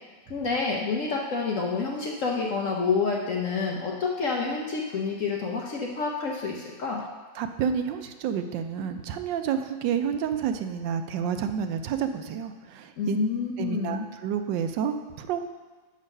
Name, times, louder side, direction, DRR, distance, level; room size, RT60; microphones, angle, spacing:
voice 1, 0.3-7.0 13.0-14.1, left 4 dB, 65° left, -1 dB, 0.8 m, -28 dB
voice 2, 7.4-13.2 13.6-15.4, right 8 dB, 75° right, 8 dB, 1.1 m, -29 dB
6.3 x 6.2 x 5.4 m, 1.3 s
omnidirectional pair, 2.2 m